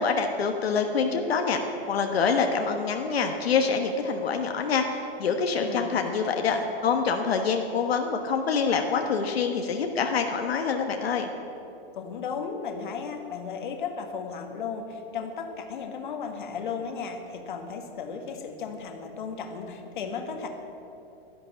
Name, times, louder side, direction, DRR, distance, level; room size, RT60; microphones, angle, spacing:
voice 1, 0.0-1.6 1.9-6.6 6.8-11.3, left 5 dB, 75° left, 4 dB, 1.3 m, -26 dB
voice 2, 5.5-6.6 11.9-20.5, left 6 dB, 50° left, 5 dB, 1.6 m, -35 dB
12.0 x 11.0 x 8.4 m, 2.9 s
hypercardioid pair, 175°, 31 cm